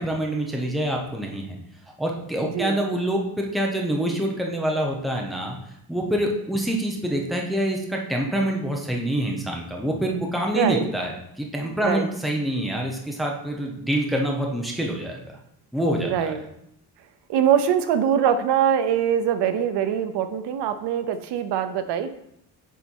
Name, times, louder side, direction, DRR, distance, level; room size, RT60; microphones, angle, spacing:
voice 1, 0.0-1.6 2.0-5.6 5.9-15.2 15.7-16.5, right 1 dB, ahead, 0 dB, 0.8 m, -26 dB
voice 2, 2.4-2.8 10.5-10.8 11.8-12.1 16.0-16.4 17.3-22.1, right 8 dB, 85° right, 10 dB, 0.7 m, -23 dB
7.1 x 4.1 x 4.5 m, 0.76 s
cardioid pair, 170°, 40 cm